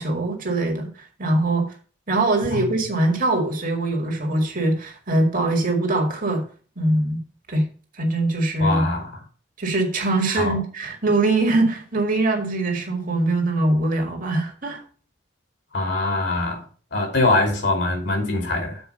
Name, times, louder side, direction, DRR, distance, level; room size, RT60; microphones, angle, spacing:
voice 1, 0.0-1.7 2.1-6.4 6.8-7.2 7.5-7.7 8.0-8.9 9.6-14.8, right 2 dB, 45° right, 2.0 m, -22 dB
voice 2, 8.6-9.1 10.3-10.6 15.7-16.6 16.9-18.8, left 2 dB, 60° left, 2.6 m, -22 dB
7.1 x 4.9 x 6.4 m
head